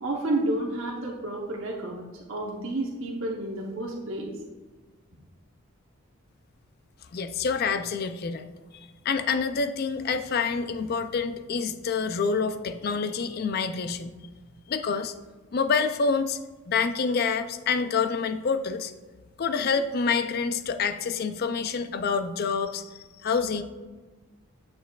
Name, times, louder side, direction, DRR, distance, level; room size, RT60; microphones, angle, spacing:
voice 1, 0.0-2.0 2.3-4.3, right 1 dB, 65° right, -2 dB, 0.9 m, -30 dB
voice 2, 7.1-8.5 9.0-14.2 14.7-15.1 15.5-16.4 16.7-18.9 19.4-22.9 23.2-23.6, left 5 dB, 45° left, 10 dB, 0.4 m, -27 dB
9.3 x 6.3 x 2.4 m, 1.3 s
head